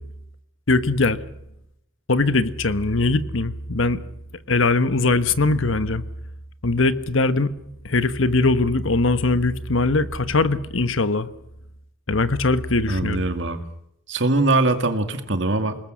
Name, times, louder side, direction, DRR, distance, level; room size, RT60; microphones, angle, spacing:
voice 1, 0.7-1.2 2.1-4.0 4.5-6.0 6.6-7.5 7.8-11.3 12.1-13.2, left 3 dB, 70° left, 13 dB, 1.2 m, -21 dB
voice 2, 12.9-13.6 14.1-15.8, right 2 dB, 60° right, 8 dB, 2.2 m, -22 dB
28.5 x 19.5 x 6.4 m, 0.80 s
head